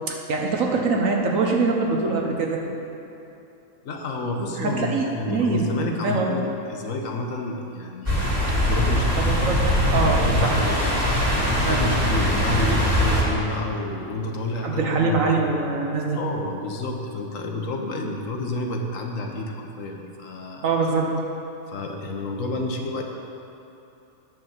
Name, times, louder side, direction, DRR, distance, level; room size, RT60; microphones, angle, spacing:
voice 1, 0.1-2.6 4.4-5.7 6.0-6.4 9.2-9.6 9.9-10.5 11.6-11.8 14.6-16.2 20.6-21.1, right 3 dB, 65° right, 1 dB, 1.4 m, -23 dB
voice 2, 3.8-8.2 8.6-11.0 11.6-15.5 16.1-20.6 21.7-23.0, left 2 dB, 65° left, 2 dB, 1.3 m, -30 dB
sound 1, 8.1-13.2, equal, 10° right, 2.1 m, -21 dB
9.1 x 6.2 x 7.1 m, 2.9 s
omnidirectional pair, 1.5 m